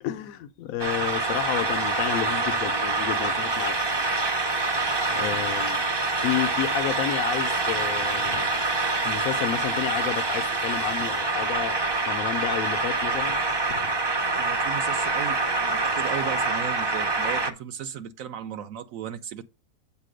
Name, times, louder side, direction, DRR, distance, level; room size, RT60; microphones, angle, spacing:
voice 1, 0.0-3.8 5.1-5.8 6.1-8.6 9.0-11.8 12.0-13.4 13.7-13.9, left 11 dB, 85° left, 1.1 m, -31 dB
sound 1, 0.8-17.5, right 3 dB, 30° right, 0.4 m, -26 dB
voice 2, 5.1-5.4 14.4-19.4, right 9 dB, 75° right, 1.0 m, -36 dB
8.2 x 3.0 x 6.3 m
omnidirectional pair, 1.4 m